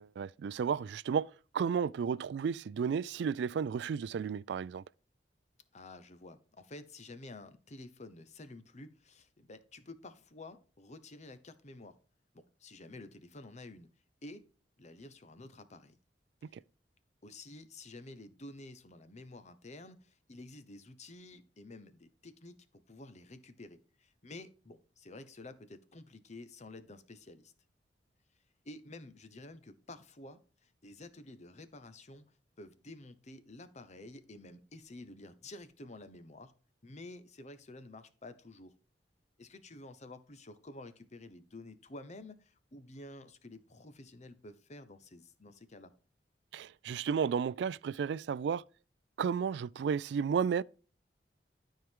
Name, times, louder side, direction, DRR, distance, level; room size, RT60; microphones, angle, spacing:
voice 1, 0.0-4.8 46.5-48.6 49.2-50.6, right 6 dB, 70° right, 0.3 m, -33 dB
voice 2, 5.7-11.9 12.3-13.9 14.2-14.4 14.8-15.9 16.5-16.6 17.2-22.6 22.9-27.5 28.6-32.2 32.6-36.5 36.8-38.7 39.4-45.9, left 2 dB, 40° left, 0.9 m, -50 dB
12.5 x 4.6 x 3.6 m
head